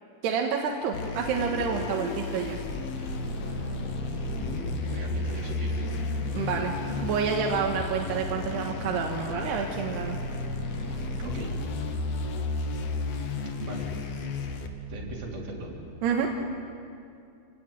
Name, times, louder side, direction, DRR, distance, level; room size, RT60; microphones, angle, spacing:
voice 1, 0.2-2.6 6.3-10.2 16.0-16.3, right 6 dB, 90° right, 1 dB, 3.5 m, -28 dB
Vehicle, 0.6-16.1, equal, 15° right, 5.7 m, -46 dB
sound 1, 0.9-14.7, left 3 dB, 55° left, 2.0 m, -33 dB
sound 2, 3.0-11.0, left 1 dB, 15° left, 7.5 m, -41 dB
voice 2, 4.3-5.9 11.2-11.6 13.5-14.2 14.9-15.7, right 2 dB, 65° right, -2 dB, 5.6 m, -39 dB
28.0 x 18.0 x 9.2 m, 2.5 s
omnidirectional pair, 4.6 m